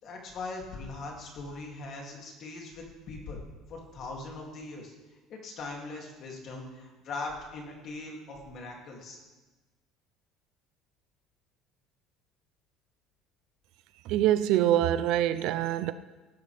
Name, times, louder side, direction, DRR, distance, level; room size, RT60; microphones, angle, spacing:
voice 1, 0.0-3.4 3.7-4.9 5.3-9.2, left 3 dB, 40° left, 2.6 m, -40 dB
voice 2, 14.1-15.9, right 12 dB, 60° right, 0.5 m, -25 dB
17.5 x 10.5 x 3.4 m
cardioid pair, 175°, 0 cm